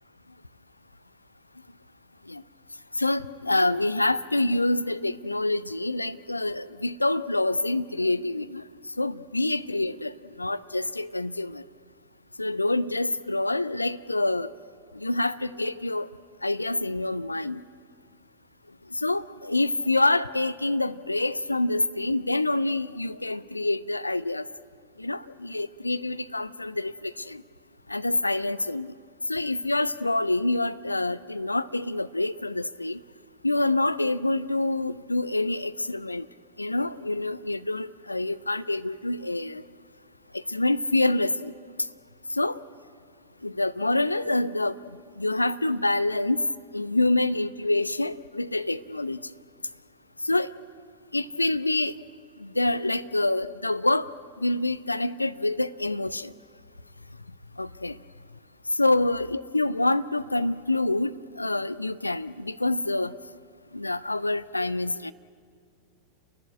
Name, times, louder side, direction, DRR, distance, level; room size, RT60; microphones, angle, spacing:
voice 1, 3.0-8.6 9.0-11.6 12.4-14.5 14.9-16.1 16.4-17.6 18.9-24.5 25.0-27.4 27.9-28.9 29.3-33.0 33.4-36.3 36.6-39.6 40.3-41.5 42.3-42.6 43.4-46.4 46.7-49.2 50.2-50.5 51.1-51.9 52.4-54.1 54.4-56.3 57.6-58.0 58.8-63.1 63.7-65.1, left 2 dB, 85° left, 15 dB, 0.5 m, -26 dB
29.0 x 11.5 x 9.7 m, 2.2 s
figure-of-eight pair, 90°, 0 cm